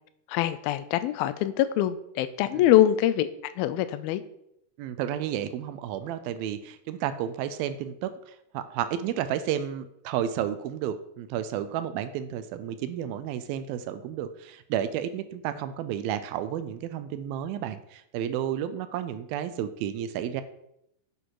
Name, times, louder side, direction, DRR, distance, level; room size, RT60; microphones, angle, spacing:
voice 1, 0.3-3.3 3.6-4.2, left 12 dB, 85° left, 13 dB, 2.5 m, -24 dB
voice 2, 4.8-20.4, right 10 dB, 85° right, 12 dB, 2.5 m, -32 dB
9.8 x 7.9 x 4.7 m, 0.79 s
omnidirectional pair, 4.3 m